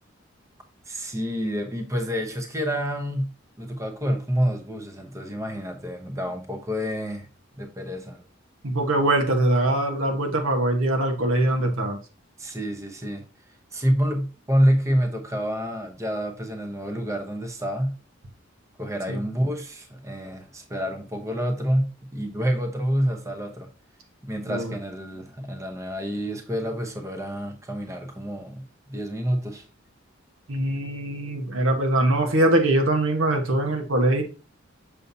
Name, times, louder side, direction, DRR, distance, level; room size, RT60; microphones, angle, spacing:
voice 1, 0.9-3.3 3.6-7.3 7.6-8.2 12.4-13.2 13.7-18.0 18.8-23.7 24.2-28.6 28.9-29.7, equal, 15° right, 0.8 m, -28 dB
voice 2, 8.6-12.0 19.1-19.2 24.5-24.7 30.5-34.2, right 1 dB, 90° right, 1.3 m, -22 dB
6.7 x 5.4 x 2.7 m
head